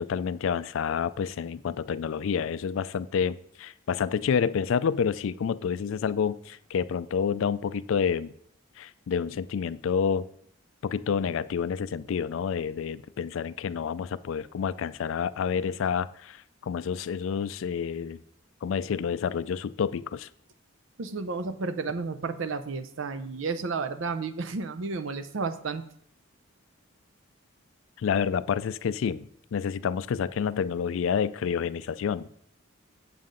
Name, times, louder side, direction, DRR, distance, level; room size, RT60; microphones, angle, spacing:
voice 1, 0.0-8.3 8.8-10.3 10.8-18.2 18.6-20.3 28.0-32.4, left 7 dB, 75° left, 16 dB, 0.3 m, -29 dB
voice 2, 21.0-25.8, right 4 dB, 70° right, 11 dB, 0.5 m, -32 dB
7.6 x 7.3 x 3.8 m, 0.67 s
head